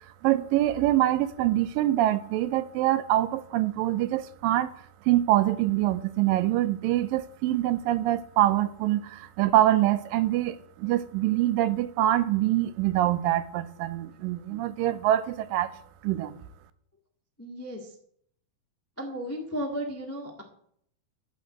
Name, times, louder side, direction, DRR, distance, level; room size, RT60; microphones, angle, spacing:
voice 1, 0.2-4.7 5.1-15.7 16.0-16.4, right 14 dB, 85° right, 2.4 m, -25 dB
voice 2, 17.4-17.9 19.0-20.4, equal, 15° left, 0.4 m, -34 dB
12.0 x 5.5 x 7.8 m
omnidirectional pair, 3.9 m